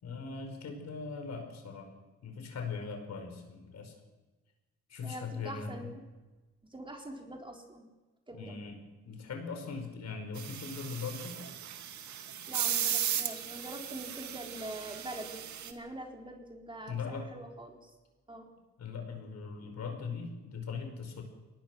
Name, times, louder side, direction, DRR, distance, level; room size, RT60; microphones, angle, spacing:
voice 1, 0.0-1.9 2.2-3.9 4.9-5.9 8.3-8.8 9.0-11.4 16.9-17.3 18.8-21.2, left 5 dB, 60° left, 4 dB, 5.3 m, -40 dB
voice 2, 5.0-6.0 6.7-7.9 8.3-8.6 12.5-17.9 18.3-18.5, right 1 dB, 15° right, 1 dB, 4.0 m, -44 dB
sound 1, 10.3-15.7, right 9 dB, 70° right, 2.1 m, -36 dB
23.0 x 19.0 x 6.3 m, 1.2 s
cardioid pair, 90°, 30 cm